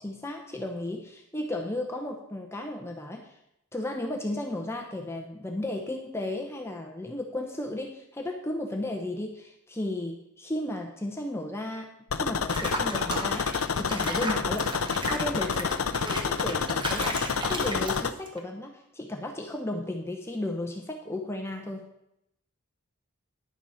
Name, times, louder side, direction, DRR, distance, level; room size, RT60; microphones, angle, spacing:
voice 1, 0.0-3.4 3.7-15.7 16.0-21.9, left 1 dB, 10° left, 2 dB, 0.9 m, -34 dB
sound 1, 12.1-18.1, left 5 dB, 75° left, 0.6 m, -29 dB
Water / Bathtub (filling or washing), 12.5-18.4, right 2 dB, 20° right, 1.1 m, -36 dB
10.5 x 7.1 x 5.7 m, 0.79 s
head